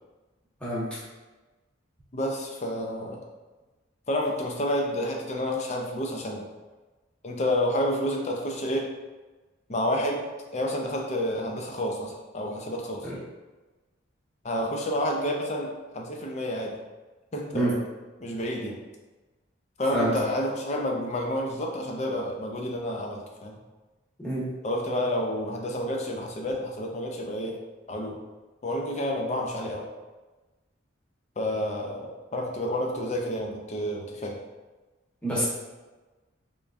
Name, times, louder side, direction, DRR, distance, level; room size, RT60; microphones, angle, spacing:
voice 1, 0.6-1.0 13.0-13.1 17.5-17.7 19.9-20.1 24.2-24.4 35.2-35.4, right 1 dB, 5° left, -9 dB, 1.1 m, -27 dB
voice 2, 2.1-3.2 4.1-6.5 7.2-8.9 9.7-10.2 10.5-13.1 14.4-16.8 17.3-17.8 18.2-18.8 19.8-23.6 24.6-27.6 27.9-28.2 28.6-29.9 31.4-34.4, left 1 dB, 35° left, 0 dB, 0.5 m, -29 dB
3.6 x 3.3 x 2.5 m, 1.2 s
head